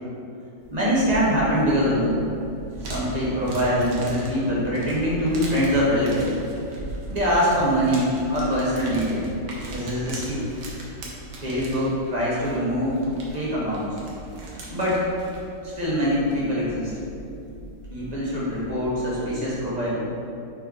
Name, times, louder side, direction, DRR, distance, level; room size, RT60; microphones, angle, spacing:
sound 1, 0.6-19.6, right 1 dB, 75° right, 1.6 m, -39 dB
voice 1, 0.7-2.2 2.9-6.4 7.1-9.3 9.7-10.4 11.4-13.9 14.7-15.0 15.6-16.9 17.9-20.0, equal, 25° right, -7 dB, 1.4 m, -23 dB
5.3 x 4.5 x 4.5 m, 2.6 s
omnidirectional pair, 1.9 m